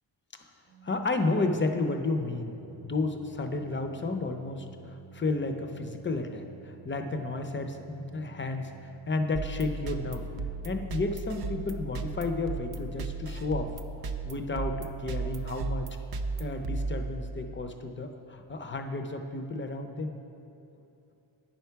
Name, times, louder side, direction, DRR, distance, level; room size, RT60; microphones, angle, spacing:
Organ, 0.7-11.5, right 6 dB, 85° right, 0.7 m, -52 dB
voice 1, 0.8-2.6 2.8-8.7 9.1-10.3 10.6-13.7 14.2-16.0 16.4-20.2, left 3 dB, 25° left, 6 dB, 0.6 m, -32 dB
sound 1, 9.3-17.5, right 3 dB, 50° right, 0.5 m, -35 dB
9.1 x 5.8 x 4.6 m, 2.9 s
cardioid pair, 80°, 47 cm